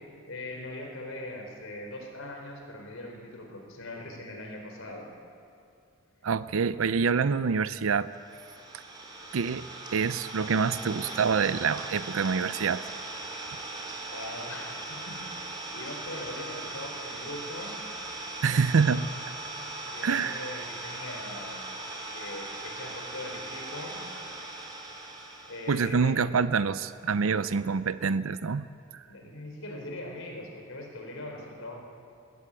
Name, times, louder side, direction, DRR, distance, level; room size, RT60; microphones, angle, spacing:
voice 1, 0.3-5.1 14.1-15.2 15.7-17.8 19.9-21.6 22.1-24.0 25.5-26.2 29.1-31.8, left 1 dB, 80° left, 2 dB, 4.4 m, -41 dB
voice 2, 6.2-8.1 8.7-8.8 9.3-12.8 18.4-19.1 20.0-20.6 25.7-28.7 28.9-29.0, right 5 dB, 75° right, 14 dB, 0.5 m, -26 dB
Idling, 8.1-25.8, right 2 dB, 20° right, 3.8 m, -39 dB
21.0 x 15.5 x 9.0 m, 2.5 s
head